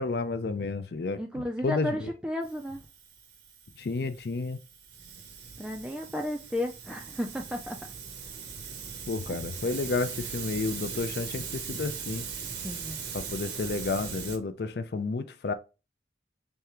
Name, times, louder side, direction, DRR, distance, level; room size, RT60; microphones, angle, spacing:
voice 1, 0.0-1.2 1.6-2.1 3.8-4.6 9.1-12.2 13.1-15.5, left 3 dB, 60° left, 0.4 m, -31 dB
voice 2, 1.2-2.8 5.6-7.9 9.3-9.4 12.6-13.0, left 1 dB, 5° right, 0.3 m, -33 dB
Hiss, 2.4-14.4, right 6 dB, 70° right, 0.8 m, -40 dB
3.5 x 3.3 x 2.9 m
head